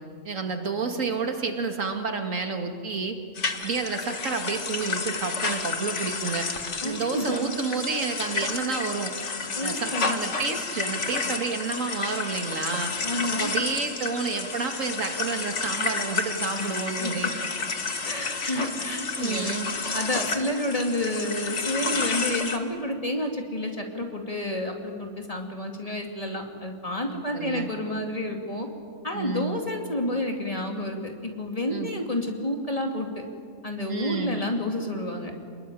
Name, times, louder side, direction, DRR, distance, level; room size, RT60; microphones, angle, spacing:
voice 1, 0.2-3.2 3.5-6.5 6.8-9.1 9.6-12.9 13.3-17.5 18.4-18.6 19.1-19.7 27.1-27.7 29.1-29.6 31.7-31.9 33.9-34.4, right 4 dB, 85° right, 5 dB, 2.5 m, -30 dB
sound 1, 3.4-22.6, left 4 dB, 65° left, 1.9 m, -31 dB
voice 2, 6.8-7.5 9.5-10.2 13.0-13.5 16.5-17.2 18.0-28.7 29.0-33.2 33.6-35.3, left 1 dB, 30° left, 2 dB, 2.7 m, -30 dB
26.0 x 21.0 x 10.0 m, 2.2 s
omnidirectional pair, 1.3 m